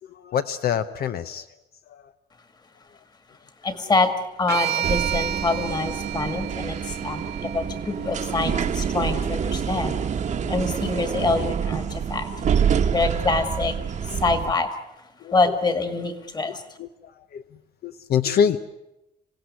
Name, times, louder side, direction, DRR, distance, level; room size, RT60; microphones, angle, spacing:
voice 1, 0.1-1.5 1.9-2.1 10.3-10.5 12.4-12.9 14.1-14.2 15.2-15.3 16.5-17.4 17.8-18.6, left 8 dB, 70° left, 10 dB, 0.8 m, -27 dB
voice 2, 3.6-10.0 10.5-12.3 12.9-13.8 14.0-14.8 15.3-16.6, left 3 dB, 25° left, 9 dB, 2.0 m, -25 dB
sound 1, 4.5-8.7, right 11 dB, 85° right, 2.4 m, -31 dB
sound 2, 4.8-14.5, right 7 dB, 45° right, 1.2 m, -27 dB
27.0 x 17.5 x 9.6 m, 0.94 s
wide cardioid pair, 175°, 17 cm